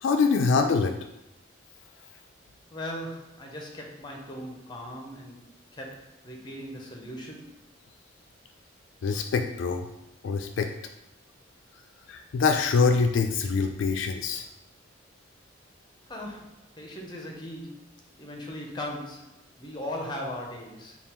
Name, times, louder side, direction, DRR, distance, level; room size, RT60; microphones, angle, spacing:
voice 1, 0.0-0.9 9.0-9.9 10.2-10.7 12.1-14.5, left 4 dB, 75° left, 5 dB, 0.3 m, -24 dB
voice 2, 2.7-5.4 5.7-7.5 16.1-17.9 18.2-21.0, left 1 dB, 25° left, 0 dB, 0.6 m, -38 dB
3.6 x 2.3 x 4.3 m, 0.88 s
head